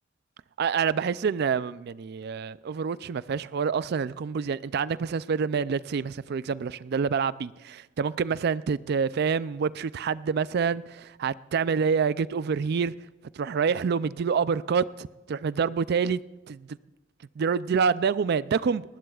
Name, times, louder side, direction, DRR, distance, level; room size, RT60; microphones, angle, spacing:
voice 1, 0.6-12.9 13.4-16.2 16.5-16.7 17.4-18.8, right 6 dB, 55° right, 0.4 m, -27 dB
20.0 x 19.0 x 2.4 m
head